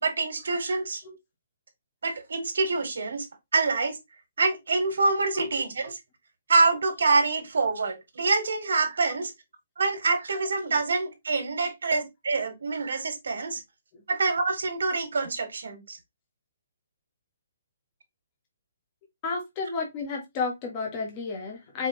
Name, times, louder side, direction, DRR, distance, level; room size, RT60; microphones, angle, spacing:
voice 1, 0.0-1.0 2.0-3.3 3.5-4.0 4.4-6.0 6.5-9.3 9.8-13.6 14.1-16.0, right 3 dB, 70° right, 1.5 m, -26 dB
voice 2, 19.2-21.9, left 4 dB, 20° left, 0.9 m, -32 dB
4.7 x 2.9 x 2.9 m
hypercardioid pair, 180°, 0 cm